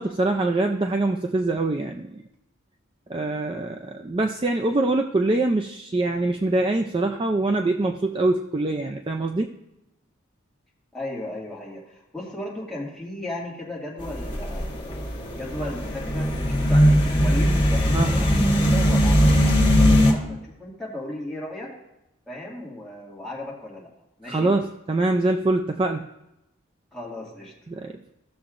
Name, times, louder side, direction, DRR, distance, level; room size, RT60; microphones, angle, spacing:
voice 1, 0.0-2.2 3.1-9.5 17.9-18.2 24.3-26.1 27.7-28.0, right 2 dB, 25° right, 4 dB, 0.4 m, -24 dB
voice 2, 10.9-14.7 15.3-21.7 22.3-23.9 24.2-24.5 26.9-27.5, left 1 dB, ahead, -6 dB, 2.0 m, -35 dB
sound 1, 14.0-20.1, equal, 25° left, 1.5 m, -20 dB
15.0 x 6.9 x 2.5 m, 0.89 s
head